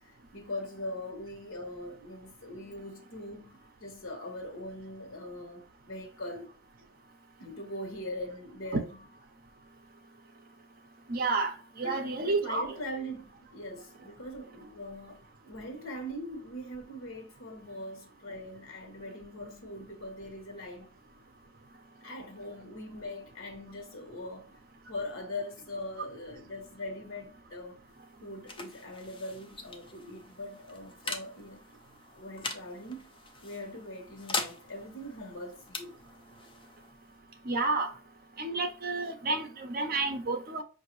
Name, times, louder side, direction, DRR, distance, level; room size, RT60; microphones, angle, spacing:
voice 1, 0.0-6.5 7.4-8.9 11.8-21.0 22.0-24.5 24.9-27.8 28.2-31.6 32.1-33.1 33.4-36.0, left 1 dB, 75° left, 1.2 m, -41 dB
voice 2, 11.1-12.8 37.4-37.9 38.4-40.6, right 3 dB, 45° right, 0.6 m, -30 dB
sound 1, 27.7-39.0, left 3 dB, 25° left, 0.5 m, -42 dB
5.0 x 2.6 x 2.9 m
head